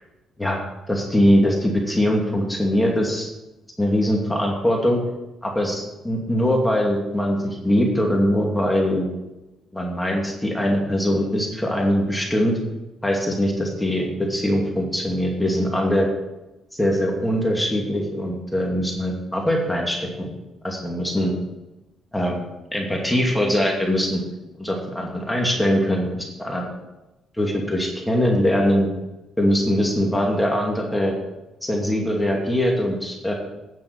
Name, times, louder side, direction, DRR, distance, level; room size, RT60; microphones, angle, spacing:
voice 1, 0.9-3.3 3.8-5.0 5.4-9.1 9.7-12.6 13.0-16.1 16.8-20.3 20.6-21.3 22.1-22.4 22.7-24.2 24.6-26.7 27.4-28.9 29.4-31.1 31.6-33.3, equal, 10° left, 0 dB, 2.6 m, -22 dB
9.5 x 6.9 x 8.6 m, 1.0 s
cardioid pair, 90°, 0 cm